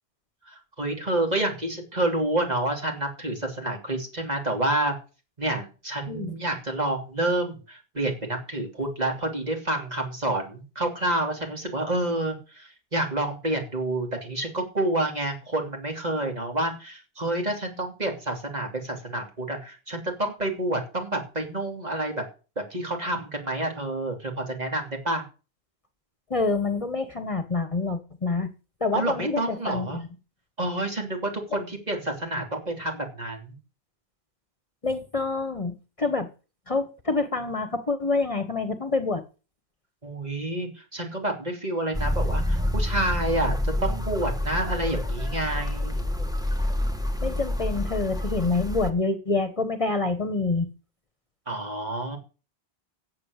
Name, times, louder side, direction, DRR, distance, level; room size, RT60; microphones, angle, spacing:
voice 1, 0.5-4.9 5.4-22.2 22.6-25.2 28.9-30.0 30.6-33.6 40.0-43.6 43.8-46.1 51.5-52.2, right 1 dB, 40° right, 2 dB, 3.2 m, -29 dB
voice 2, 26.3-28.5 28.8-30.1 34.8-36.3 36.7-39.2 47.2-50.7, left 3 dB, 35° left, 10 dB, 1.3 m, -27 dB
sound 1, 41.9-48.9, left 1 dB, 5° right, 1.2 m, -27 dB
13.5 x 8.0 x 6.6 m, 0.34 s
omnidirectional pair, 1.0 m